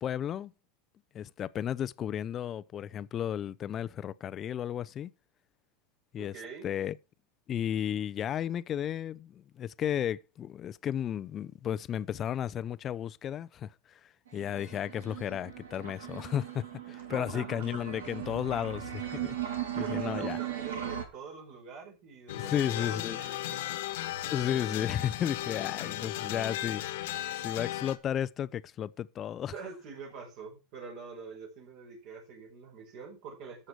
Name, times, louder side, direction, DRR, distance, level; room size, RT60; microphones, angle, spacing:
voice 1, 0.0-0.5 1.1-5.1 6.1-6.3 6.6-7.0 7.5-13.7 14.3-20.4 22.3-23.2 24.3-27.1 27.4-29.5, left 10 dB, 30° left, 0.6 m, -33 dB
voice 2, 6.2-6.7 16.9-17.6 19.8-23.7 29.5-33.7, right 5 dB, 55° right, 5.0 m, -45 dB
sound 1, 14.3-21.1, right 10 dB, 90° right, 2.5 m, -38 dB
sound 2, 22.3-28.0, left 14 dB, 75° left, 1.5 m, -36 dB
14.0 x 6.6 x 4.7 m
supercardioid pair, 125°, 0 cm